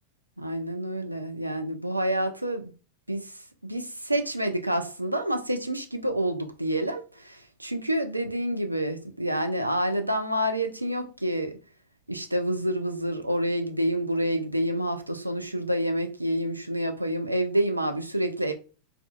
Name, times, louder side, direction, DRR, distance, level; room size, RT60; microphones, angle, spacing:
voice 1, 0.4-2.7 3.1-11.6 12.1-18.5, right 1 dB, 85° right, 0.3 m, -28 dB
2.5 x 2.3 x 2.2 m
figure-of-eight pair, 90°, 0 cm